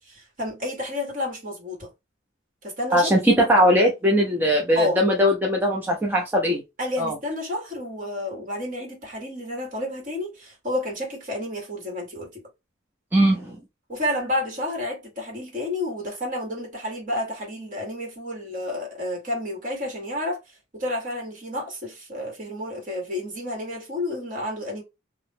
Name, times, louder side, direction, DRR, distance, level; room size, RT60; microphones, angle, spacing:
voice 1, 0.0-1.9 2.6-3.1 4.7-5.0 6.8-12.5 13.9-20.4 20.7-24.8, left 1 dB, 45° right, 1.6 m, -30 dB
voice 2, 2.9-6.6 7.0-7.1 13.1-13.6, equal, 10° right, 0.5 m, -20 dB
2.9 x 2.1 x 3.4 m
head